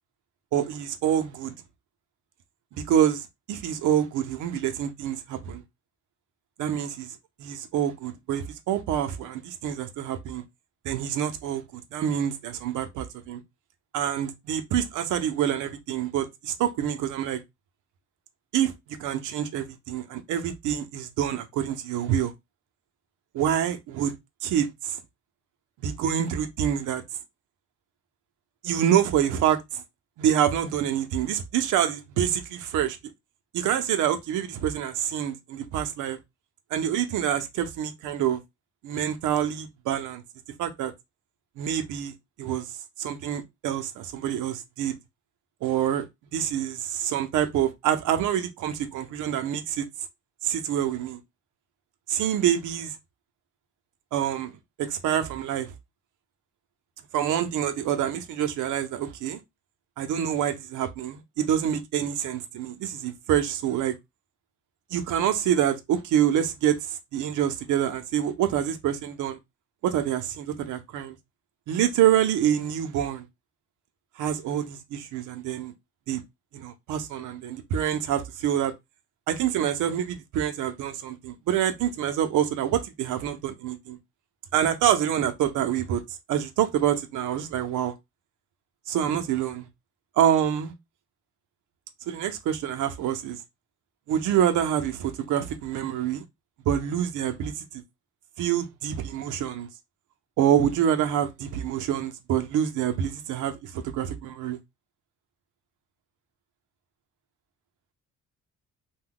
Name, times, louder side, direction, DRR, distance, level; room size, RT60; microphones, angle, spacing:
voice 1, 0.5-1.5 2.7-5.6 6.6-10.4 10.8-13.4 13.9-17.4 18.5-22.3 23.3-24.1 24.4-25.0 25.8-27.0 28.6-29.8 30.2-33.0 33.5-36.2 36.7-38.4 38.8-40.2 40.6-40.9 41.6-42.7 43.0-44.9 45.6-46.1 46.3-49.9 50.4-51.2 52.1-53.0 54.1-54.5 54.8-55.7 57.1-59.4 60.0-64.0 64.9-69.4 69.8-71.2 71.7-73.2 74.2-75.7 76.1-76.2 76.5-78.7 79.3-84.0 84.5-86.0 86.3-87.9 88.9-89.7 90.2-90.7 92.1-93.4 94.1-96.2 96.7-97.8 98.4-99.7 100.4-104.6, right 10 dB, 85° right, 0.7 m, -26 dB
2.7 x 2.2 x 3.7 m
cardioid pair, 90°, 30 cm